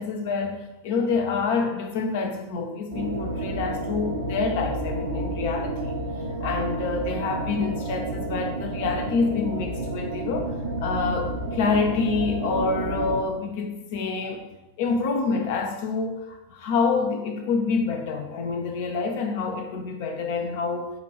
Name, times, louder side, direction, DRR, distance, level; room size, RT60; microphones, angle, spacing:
voice 1, 0.0-6.0 6.4-10.5 10.8-14.5 14.8-20.9, left 4 dB, 50° left, 5 dB, 0.6 m, -27 dB
sound 1, 2.9-13.2, right 2 dB, 70° right, 0.8 m, -30 dB
6.6 x 2.5 x 3.0 m, 0.99 s
figure-of-eight pair, 90°, 0 cm